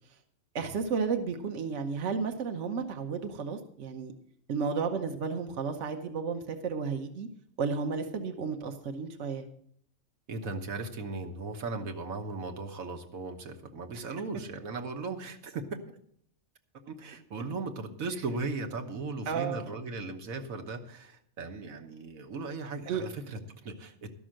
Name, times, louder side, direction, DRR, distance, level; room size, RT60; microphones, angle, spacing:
voice 1, 0.5-4.1 4.5-7.3 7.6-9.5 19.3-19.7 22.9-23.1, right 5 dB, 60° right, 5 dB, 1.3 m, -32 dB
voice 2, 10.3-15.7 16.9-24.1, right 3 dB, 80° right, 4 dB, 1.6 m, -37 dB
12.5 x 6.2 x 7.5 m, 0.65 s
omnidirectional pair, 1.4 m